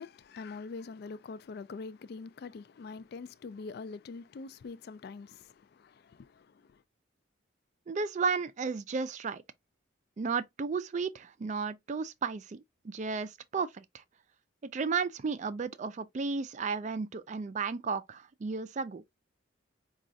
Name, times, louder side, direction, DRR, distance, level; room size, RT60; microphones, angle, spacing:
voice 1, 0.0-6.8, left 4 dB, 55° left, 0.3 m, -44 dB
voice 2, 7.9-9.4 10.2-14.0 14.7-19.0, right 5 dB, 40° right, 0.3 m, -33 dB
5.0 x 2.3 x 2.6 m
head